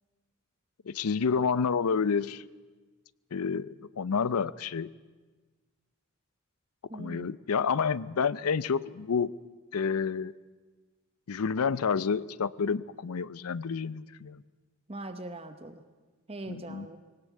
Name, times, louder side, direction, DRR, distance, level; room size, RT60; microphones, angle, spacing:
voice 1, 0.9-2.4 3.3-4.9 6.9-9.3 9.7-10.3 11.3-14.4 16.5-16.9, left 6 dB, 85° left, 18 dB, 0.5 m, -29 dB
voice 2, 6.9-7.3 14.9-15.8 16.3-17.0, right 2 dB, 25° right, 9 dB, 0.8 m, -41 dB
20.5 x 18.0 x 8.1 m, 1.3 s
head